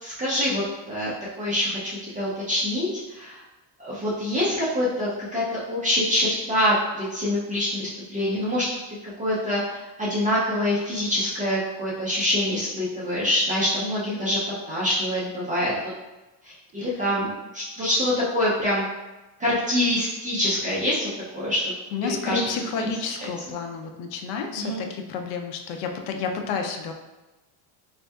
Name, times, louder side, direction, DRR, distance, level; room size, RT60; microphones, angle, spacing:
voice 1, 0.0-3.4 3.8-8.8 9.2-14.4 14.7-15.7 16.4-18.8 19.4-21.6 22.2-22.4 22.8-22.9 24.5-24.8, left 1 dB, 20° right, -9 dB, 0.3 m, -25 dB
voice 2, 21.9-26.9, left 5 dB, 65° left, 4 dB, 0.5 m, -30 dB
4.2 x 2.7 x 2.2 m, 1.1 s
cardioid pair, 170°, 49 cm